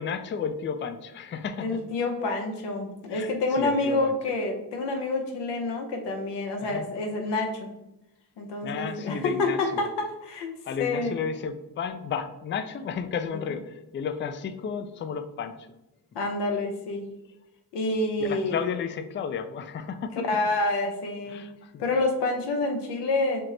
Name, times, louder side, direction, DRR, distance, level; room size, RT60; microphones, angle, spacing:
voice 1, 0.0-1.8 3.1-4.1 6.6-6.9 8.6-9.8 10.7-15.7 18.2-20.2 21.3-21.8, left 6 dB, 30° left, 10 dB, 0.3 m, -33 dB
voice 2, 1.6-7.7 8.4-10.5 10.8-11.2 13.3-13.4 16.1-17.1 17.7-18.6 20.3-21.5 21.8-23.4, left 2 dB, 90° left, 3 dB, 0.8 m, -28 dB
4.5 x 2.0 x 3.8 m, 0.92 s
cardioid pair, 65°, 40 cm